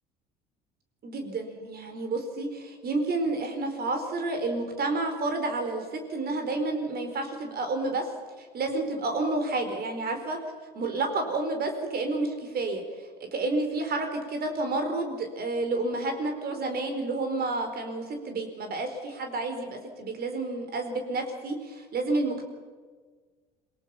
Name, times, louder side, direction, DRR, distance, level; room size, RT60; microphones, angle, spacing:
voice 1, 1.0-8.1 8.4-10.4 10.7-12.8 13.3-22.4, right 2 dB, 50° right, 5 dB, 4.5 m, -30 dB
27.0 x 18.5 x 5.8 m, 1.5 s
hypercardioid pair, 60°, 20 cm